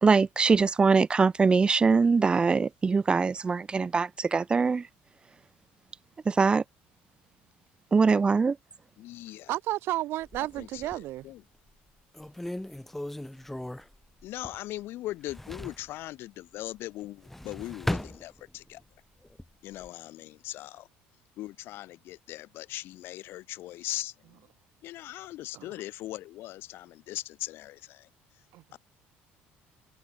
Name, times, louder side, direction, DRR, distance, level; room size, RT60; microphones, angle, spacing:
voice 1, 0.0-4.8 6.3-6.6 7.9-8.6, right 4 dB, 25° right, 1.8 m, -22 dB
voice 2, 9.0-9.6 10.4-11.4 14.2-18.8 19.6-20.9 21.4-24.4 24.8-28.1 28.7-28.8, left 16 dB, 65° left, 2.9 m, -40 dB
voice 3, 9.5-11.3 25.5-25.7 28.5-28.6, right 16 dB, 65° right, 4.3 m, -32 dB
sound 1, 10.2-11.2 11.7-11.8 12.1-14.8 15.1-15.9 17.0-18.8 19.2-19.9, left 1 dB, 5° left, 1.3 m, -37 dB
cardioid pair, 115°, 4 cm